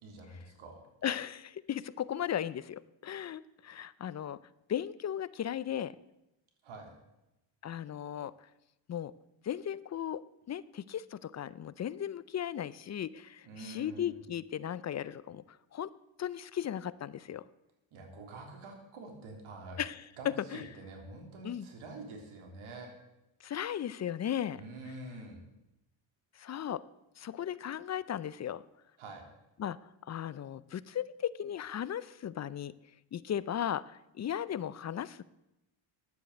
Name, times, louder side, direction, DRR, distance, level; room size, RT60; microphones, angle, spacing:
voice 1, 0.0-0.8 6.6-7.0 13.4-14.2 17.9-19.8 20.2-22.9 24.5-25.4 29.0-29.3, right 2 dB, 75° right, 2 dB, 3.5 m, -46 dB
voice 2, 1.0-4.4 4.7-6.0 7.6-8.3 8.9-9.1 9.4-15.9 16.2-17.5 19.8-20.7 21.4-21.7 23.4-24.6 26.4-26.8 27.2-28.6 29.6-29.8 30.1-32.7 33.1-35.2, left 10 dB, 35° left, 18 dB, 0.4 m, -36 dB
10.0 x 8.3 x 8.1 m, 0.92 s
cardioid pair, 100°, 50 cm